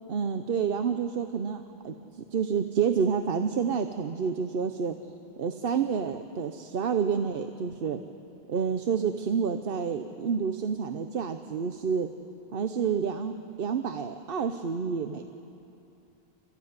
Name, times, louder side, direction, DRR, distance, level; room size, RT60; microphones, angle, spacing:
voice 1, 0.1-1.9 2.3-4.9 5.4-8.0 8.5-12.1 12.5-15.2, right 6 dB, 60° right, 7 dB, 1.0 m, -29 dB
28.5 x 15.0 x 9.5 m, 2.8 s
omnidirectional pair, 1.1 m